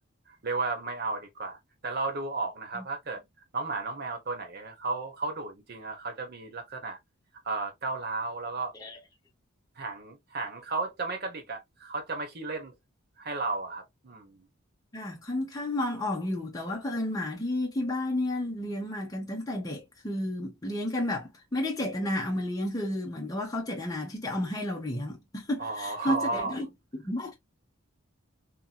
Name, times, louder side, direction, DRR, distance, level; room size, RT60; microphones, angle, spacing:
voice 1, 0.3-3.2 3.5-7.0 7.4-8.7 9.8-12.7 13.2-14.5 25.6-26.6, right 3 dB, 50° right, 0.9 m, -34 dB
voice 2, 14.9-26.7 27.0-27.3, left 1 dB, 15° left, 0.7 m, -32 dB
2.8 x 2.7 x 2.2 m
head